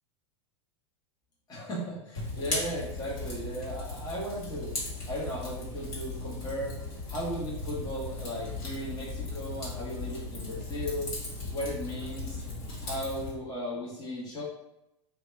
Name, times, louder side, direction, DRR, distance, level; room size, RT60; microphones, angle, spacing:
voice 1, 1.5-4.7 5.1-6.7 7.1-11.1 11.5-12.4 12.8-14.4, equal, 25° left, -5 dB, 1.1 m, -36 dB
Fire, 2.2-13.3, left 2 dB, 50° left, 1.4 m, -37 dB
2.8 x 2.3 x 3.1 m, 0.87 s
hypercardioid pair, 95°, 16 cm